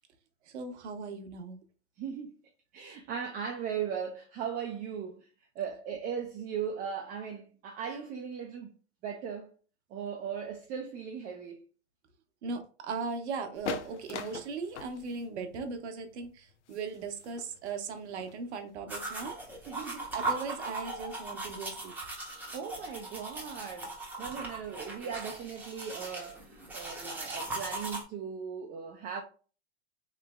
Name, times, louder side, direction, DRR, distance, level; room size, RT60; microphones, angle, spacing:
voice 1, 0.5-1.6 2.8-2.9 12.4-19.4 20.1-21.9, right 4 dB, 75° right, 0.7 m, -38 dB
voice 2, 2.0-2.4 2.7-5.3 5.6-8.7 9.0-9.5 9.9-11.6 19.7-20.1 22.5-29.2, right 7 dB, 25° right, 0.4 m, -38 dB
sound 1, 13.5-18.8, left 6 dB, 80° left, 0.5 m, -42 dB
sound 2, 18.9-28.0, right 2 dB, 5° right, 0.8 m, -39 dB
3.2 x 3.0 x 2.2 m
hypercardioid pair, 110°, 35 cm